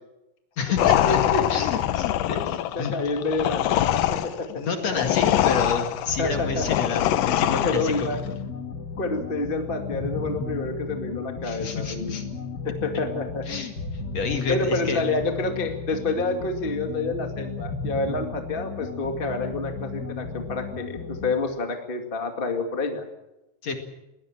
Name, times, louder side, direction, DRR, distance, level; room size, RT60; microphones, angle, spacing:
voice 1, 0.6-2.9 4.5-8.4 11.4-12.2 13.5-13.7 14.1-15.0 23.6-23.8, left 4 dB, 45° left, 5 dB, 2.5 m, -29 dB
sound 1, 0.8-8.2, left 13 dB, 90° left, 1.9 m, -24 dB
voice 2, 2.4-4.6 4.9-5.2 6.2-6.7 6.9-7.0 7.5-8.5 9.0-12.3 12.6-13.4 14.5-23.0, left 3 dB, 30° left, 4 dB, 0.9 m, -29 dB
sound 2, 6.1-21.4, left 4 dB, 65° left, 0.9 m, -34 dB
22.0 x 18.5 x 7.4 m, 0.94 s
omnidirectional pair, 5.1 m